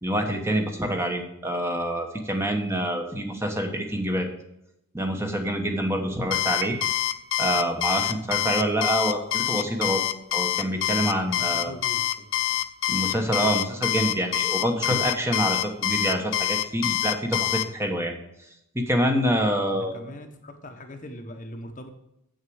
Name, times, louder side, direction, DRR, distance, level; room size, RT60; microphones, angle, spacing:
voice 1, 0.0-4.3 4.9-6.8 7.4-10.0 10.3-11.7 12.9-18.1 18.7-19.9, equal, 10° right, 3 dB, 1.1 m, -26 dB
Alarm, 6.3-17.7, left 14 dB, 60° left, 0.5 m, -26 dB
Piano, 6.6-7.5, right 7 dB, 50° right, 0.7 m, -37 dB
voice 2, 11.0-12.4 19.7-21.9, left 1 dB, 35° left, 5 dB, 1.0 m, -41 dB
8.3 x 6.4 x 6.3 m, 0.81 s
head